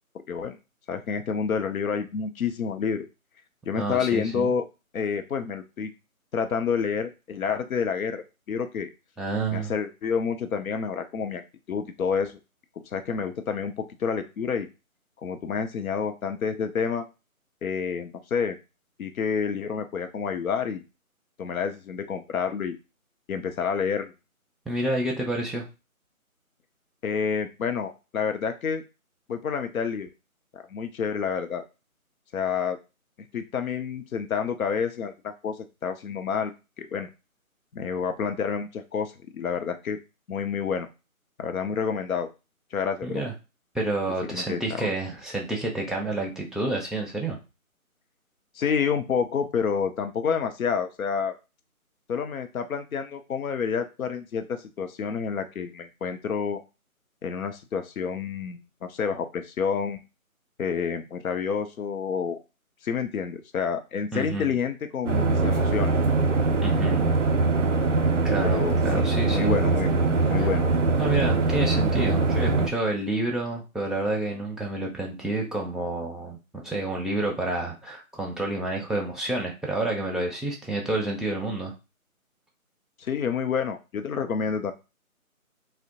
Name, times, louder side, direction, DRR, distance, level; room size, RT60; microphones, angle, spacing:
voice 1, 0.9-3.1 3.7-4.6 4.9-5.9 6.3-8.9 9.5-11.4 11.7-12.4 12.9-14.7 15.2-17.0 17.6-18.6 19.0-20.8 21.4-22.8 23.3-24.1 27.0-28.8 29.3-30.1 30.5-31.6 32.3-32.8 33.3-35.6 35.8-36.5 36.8-37.1 37.7-40.0 40.3-40.9 41.4-42.3 42.7-43.2 44.3-44.9 48.6-51.3 52.1-56.6 57.2-60.0 60.6-62.4 62.8-65.9 68.4-69.0 69.3-69.9 70.3-70.7 83.0-84.7, left 6 dB, 75° left, 8 dB, 0.6 m, -28 dB
voice 2, 3.8-4.5 9.2-9.7 24.7-25.6 43.0-43.3 43.7-47.4 64.1-64.5 66.6-67.0 68.2-69.6 70.4-70.5 71.0-76.4 76.6-81.7, right 2 dB, ahead, -3 dB, 0.3 m, -29 dB
sound 1, 65.1-72.7, right 3 dB, 60° right, 0.5 m, -22 dB
2.6 x 2.1 x 2.7 m, 0.28 s
figure-of-eight pair, 165°, 43 cm